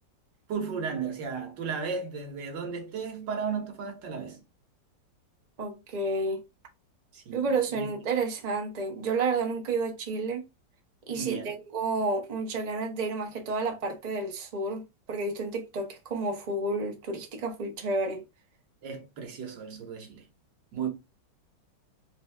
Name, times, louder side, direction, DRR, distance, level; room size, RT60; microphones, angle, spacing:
voice 1, 0.5-4.4 7.1-7.9 11.2-11.6 18.8-20.3 20.7-20.9, right 6 dB, 85° right, 1.8 m, -34 dB
voice 2, 5.6-6.4 7.3-10.4 11.1-18.2, right 3 dB, 35° right, 0.7 m, -30 dB
4.0 x 2.7 x 3.3 m
omnidirectional pair, 1.9 m